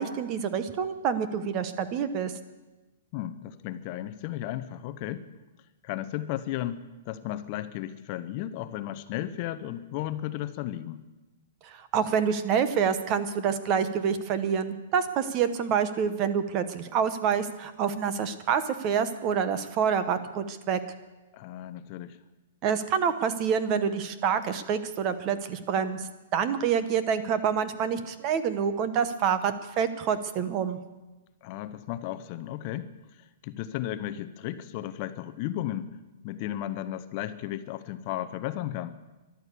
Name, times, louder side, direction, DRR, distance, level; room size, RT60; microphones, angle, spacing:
voice 1, 0.0-2.3 11.6-20.8 22.6-30.8, right 7 dB, 25° right, 12 dB, 0.9 m, -27 dB
voice 2, 3.1-5.3 5.8-11.0 21.3-22.2 31.4-32.9 33.2-35.9 36.2-39.0, left 13 dB, 35° left, 12 dB, 0.7 m, -34 dB
14.0 x 11.5 x 8.3 m, 1.1 s
hypercardioid pair, 170°, 0 cm